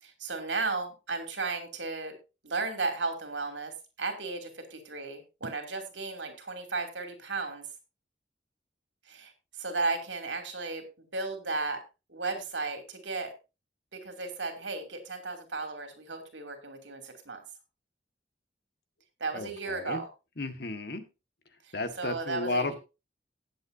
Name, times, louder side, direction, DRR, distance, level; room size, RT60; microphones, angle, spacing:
voice 1, 0.0-2.2 2.4-3.7 4.0-7.6 9.1-9.3 9.6-10.8 11.1-11.8 12.1-13.3 13.9-17.4 19.2-20.1 21.6-22.8, right 3 dB, 85° right, 6 dB, 2.9 m, -34 dB
voice 2, 19.3-20.0 20.4-21.1 21.7-22.7, left 2 dB, 60° left, 8 dB, 1.6 m, -33 dB
18.0 x 8.0 x 2.7 m, 0.28 s
head